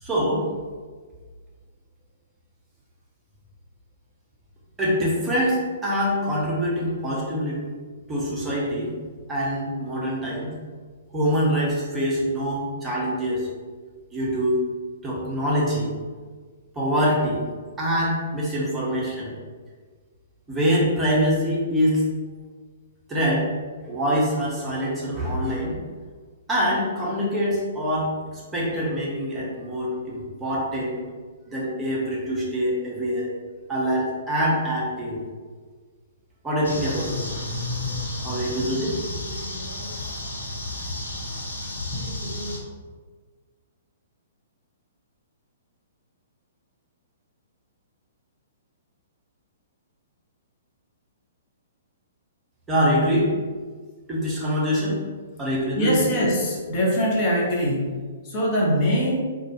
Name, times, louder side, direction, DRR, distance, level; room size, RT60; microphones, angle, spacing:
voice 1, 0.0-0.5 4.8-7.6 8.1-8.9 9.3-10.6 11.1-13.5 14.1-14.6 15.0-15.9 16.7-17.4 17.8-19.3 20.5-22.0 23.1-23.5 23.8-25.8 26.5-31.0 31.5-33.3 33.7-35.2 36.4-37.3 38.2-39.0 52.7-53.3 54.1-55.0 55.4-56.0, equal, 10° right, -7 dB, 0.9 m, -24 dB
sound 1, 36.6-42.6, left 2 dB, 70° left, 1.0 m, -31 dB
voice 2, 55.7-59.2, equal, 30° left, -4 dB, 0.8 m, -23 dB
4.1 x 2.3 x 3.1 m, 1.5 s
figure-of-eight pair, 115°, 0 cm